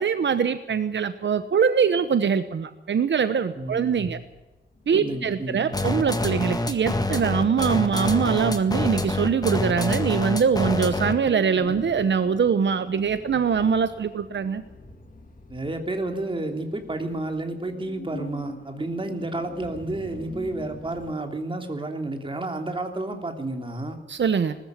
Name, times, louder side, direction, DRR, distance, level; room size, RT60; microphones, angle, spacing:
voice 1, 0.0-4.2 4.9-14.6 24.1-24.6, right 6 dB, 70° right, 11 dB, 1.1 m, -23 dB
voice 2, 3.5-4.1 4.9-5.7 15.5-24.0, right 2 dB, 25° right, 4 dB, 3.1 m, -31 dB
sound 1, 4.0-21.1, left 2 dB, 45° left, 3.0 m, -45 dB
sound 2, 5.7-11.3, left 2 dB, 20° left, 1.9 m, -26 dB
21.0 x 13.5 x 9.7 m, 1.1 s
wide cardioid pair, 135°, 19 cm